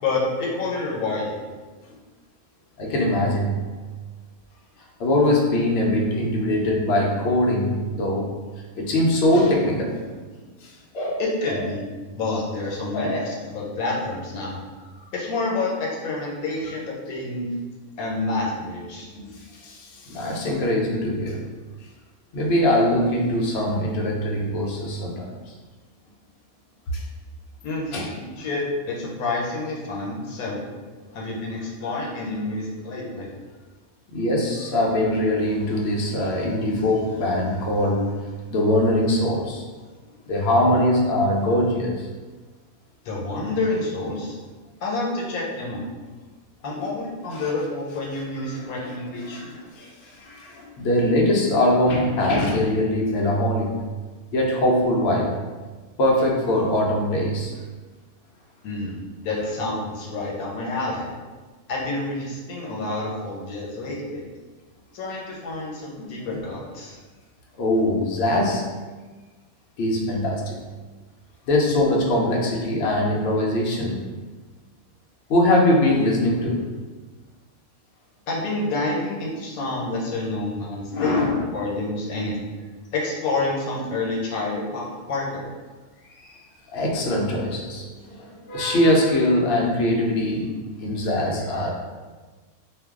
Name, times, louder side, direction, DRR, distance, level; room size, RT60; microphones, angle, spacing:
voice 1, 0.0-1.5 11.2-11.8 12.1-14.6 15.1-17.5 18.0-19.1 27.6-27.9 28.4-30.6 31.1-33.3 43.0-44.4 44.8-45.9 46.6-49.6 58.6-61.1 61.7-64.2 64.9-67.0 78.3-81.2 81.5-82.4 82.9-85.5, left 2 dB, 80° left, -3 dB, 1.1 m, -28 dB
voice 2, 2.8-3.6 5.0-8.3 8.8-10.0 10.6-11.2 12.9-13.3 19.2-21.4 22.3-25.5 26.9-27.0 27.9-28.1 34.1-39.6 40.3-42.1 46.7-46.9 47.3-47.5 48.8-48.9 49.2-53.8 54.3-55.3 56.0-57.5 66.3-66.4 67.6-68.7 69.8-70.6 71.5-74.0 75.3-76.6 80.9-81.7 86.2-86.3 86.7-91.7, left 1 dB, 60° left, -2 dB, 0.7 m, -22 dB
2.5 x 2.2 x 3.5 m, 1.3 s
omnidirectional pair, 1.5 m